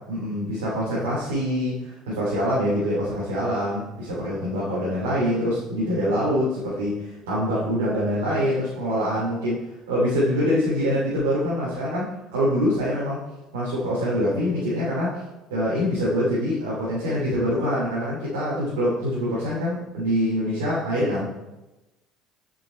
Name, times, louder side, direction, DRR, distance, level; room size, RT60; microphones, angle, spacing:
voice 1, 0.1-13.3 13.5-15.2 15.5-21.3, equal, 85° right, -8 dB, 2.8 m, -25 dB
8.4 x 6.0 x 4.4 m, 1.0 s
hypercardioid pair, 70°, 0 cm